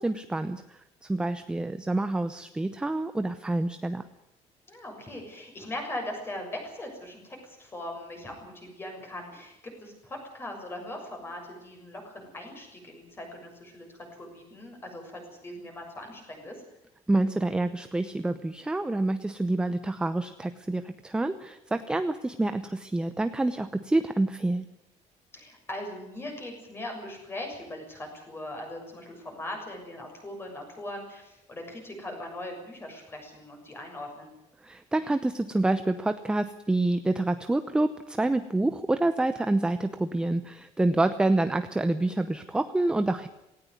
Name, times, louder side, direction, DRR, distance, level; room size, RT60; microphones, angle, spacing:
voice 1, 0.0-4.0 17.1-24.6 34.6-43.3, right 2 dB, 5° right, 10 dB, 0.8 m, -27 dB
voice 2, 4.7-16.6 25.3-34.3, left 1 dB, 20° left, 2 dB, 6.8 m, -40 dB
18.5 x 18.0 x 9.7 m, 0.87 s
cardioid pair, 175°, 13 cm